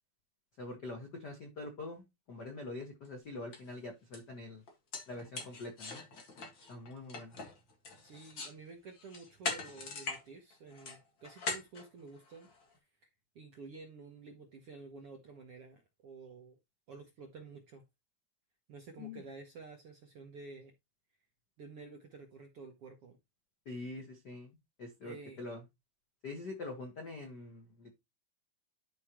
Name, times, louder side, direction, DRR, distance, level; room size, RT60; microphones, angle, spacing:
voice 1, 0.6-4.6 5.1-6.0 6.7-7.4 19.0-19.2 23.6-25.6 26.2-28.0, left 2 dB, 70° left, 0.9 m, -44 dB
sound 1, 3.0-3.1 3.5-3.7 4.1-4.2 4.7-8.6 9.0-10.2 10.5-12.6, left 4 dB, 40° left, 1.8 m, -42 dB
voice 2, 8.0-12.5 13.3-16.6 16.9-17.8 18.7-20.7 21.6-23.2 25.0-25.4, right 4 dB, 65° right, 1.5 m, -51 dB
12.0 x 4.9 x 2.9 m
omnidirectional pair, 4.3 m